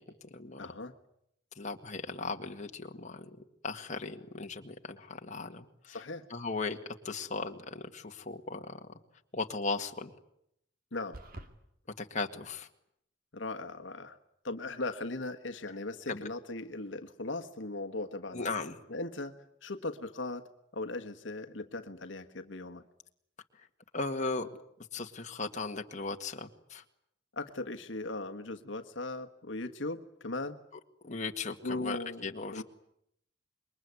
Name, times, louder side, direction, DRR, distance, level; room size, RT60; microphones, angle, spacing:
voice 1, 0.6-0.9 5.9-6.2 10.9-11.2 13.3-14.2 14.4-18.5 18.9-20.4 20.7-22.8 27.4-30.6 31.6-32.2 32.5-32.6, left 2 dB, 70° left, 6 dB, 1.5 m, -38 dB
voice 2, 1.6-3.3 3.6-6.0 6.3-6.8 7.1-8.8 9.3-10.1 12.0-12.7 16.1-16.3 18.3-18.8 23.9-24.5 24.9-26.8 31.0-32.6, left 3 dB, 40° left, 4 dB, 1.8 m, -37 dB
sound 1, 11.1-11.5, right 1 dB, 50° right, 2.5 m, -45 dB
27.0 x 22.5 x 9.5 m, 0.75 s
head